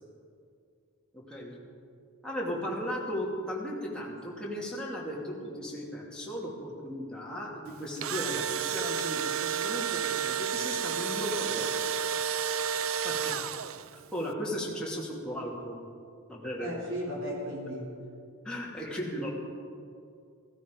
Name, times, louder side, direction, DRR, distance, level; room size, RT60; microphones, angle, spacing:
voice 1, 1.1-1.6 2.2-11.8 13.0-13.3 13.6-15.8 16.3-16.7 18.4-19.3, equal, 5° left, -5 dB, 2.6 m, -36 dB
Engine / Drill, 7.8-14.0, right 8 dB, 80° right, 0.5 m, -31 dB
voice 2, 16.6-17.9, equal, 60° right, -3 dB, 3.9 m, -35 dB
15.5 x 15.0 x 5.4 m, 2.4 s
head